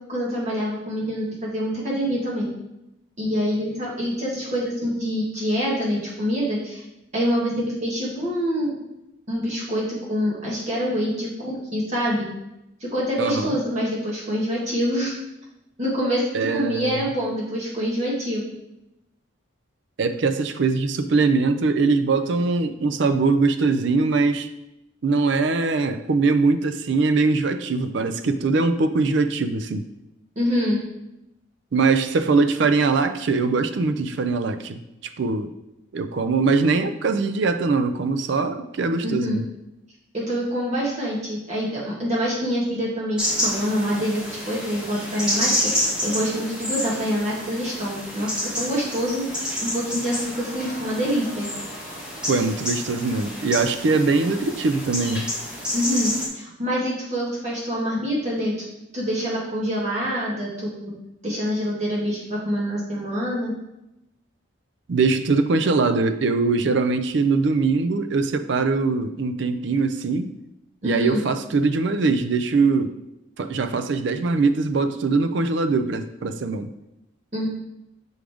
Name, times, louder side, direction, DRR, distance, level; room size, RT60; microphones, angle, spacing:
voice 1, 0.1-2.5 3.2-6.8 7.1-8.8 9.3-12.3 12.8-15.1 15.8-18.4 30.3-30.8 39.0-39.4 40.1-51.5 55.7-58.5 58.9-60.9 61.2-63.5 70.8-71.2 77.3-77.5, equal, 35° right, -6 dB, 1.5 m, -26 dB
voice 2, 13.2-13.6 16.3-17.1 20.0-24.5 25.0-29.8 31.7-34.8 35.2-35.5 35.9-39.5 52.3-55.2 64.9-70.3 70.8-72.9 73.4-76.7, right 4 dB, 60° right, 9 dB, 0.4 m, -22 dB
sound 1, 43.2-56.3, left 1 dB, 5° right, 1.1 m, -29 dB
6.3 x 5.0 x 3.5 m, 0.89 s
head